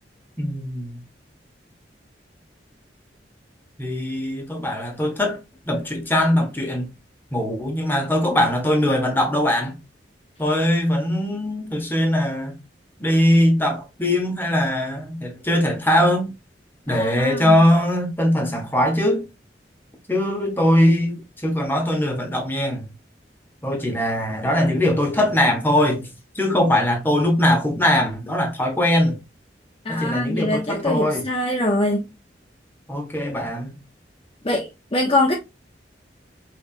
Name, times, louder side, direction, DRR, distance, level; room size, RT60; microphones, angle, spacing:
voice 1, 0.4-1.0 3.8-5.4 5.7-6.9 7.3-9.8 10.4-12.6 13.0-16.3 16.9-19.2 20.1-22.9 23.6-29.2 29.9-31.2 32.9-33.8, left 1 dB, 10° left, 1.2 m, -21 dB
voice 2, 16.9-17.6 29.8-32.0 34.4-35.3, left 1 dB, 30° left, 0.8 m, -23 dB
5.5 x 3.4 x 2.5 m
head